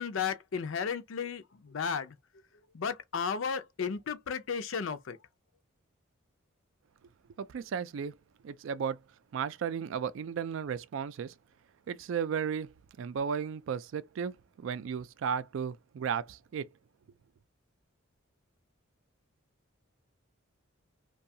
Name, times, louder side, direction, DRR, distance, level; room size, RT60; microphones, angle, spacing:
voice 1, 0.0-2.1 2.7-5.2, left 6 dB, 70° left, 0.5 m, -34 dB
voice 2, 7.4-8.1 8.4-9.0 9.3-11.3 11.9-16.7, right 7 dB, 65° right, 0.3 m, -34 dB
2.7 x 2.3 x 2.6 m
head